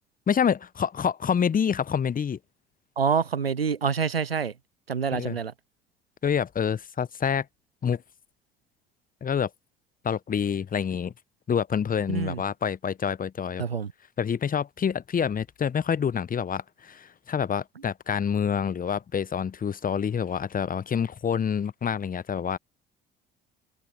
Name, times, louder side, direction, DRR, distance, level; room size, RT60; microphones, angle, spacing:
voice 1, 0.3-2.4 5.1-5.4 6.2-7.5 7.8-8.0 9.2-9.5 10.0-11.1 11.5-13.6 14.2-22.6, left 7 dB, 30° left, 1.1 m, -27 dB
voice 2, 3.0-4.5 4.9-5.5 12.1-12.4 13.6-13.9, right 6 dB, 85° right, 1.1 m, -26 dB
figure-of-eight pair, 50°, 29 cm